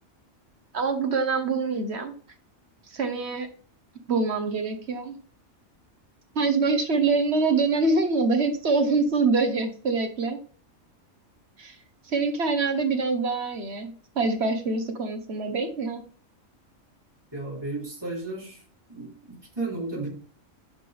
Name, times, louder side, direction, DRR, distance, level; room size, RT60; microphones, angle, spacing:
voice 1, 0.7-2.1 2.9-3.5 4.1-5.2 6.3-10.4 11.6-11.8 12.1-16.0, right 4 dB, 55° right, 7 dB, 1.3 m, -25 dB
voice 2, 17.3-18.6 18.9-20.1, right 2 dB, 20° right, -4 dB, 3.1 m, -33 dB
9.4 x 5.2 x 3.4 m, 0.43 s
omnidirectional pair, 1.4 m